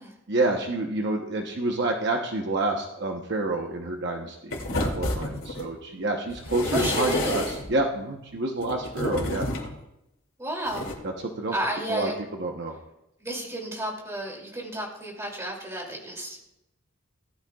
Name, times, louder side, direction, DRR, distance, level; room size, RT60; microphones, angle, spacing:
voice 1, 0.3-9.5 11.2-11.5 11.9-12.1 12.4-12.8, right 2 dB, 55° right, 2 dB, 0.9 m, -28 dB
sound 1, 4.5-5.7 6.3-7.8 8.6-9.7 10.7-10.9, left 2 dB, 75° left, 2.6 m, -30 dB
voice 2, 6.7-7.5 10.4-10.9 11.5-12.2 13.2-16.4, right 1 dB, 15° right, -1 dB, 2.7 m, -32 dB
18.0 x 12.0 x 2.4 m, 0.88 s
head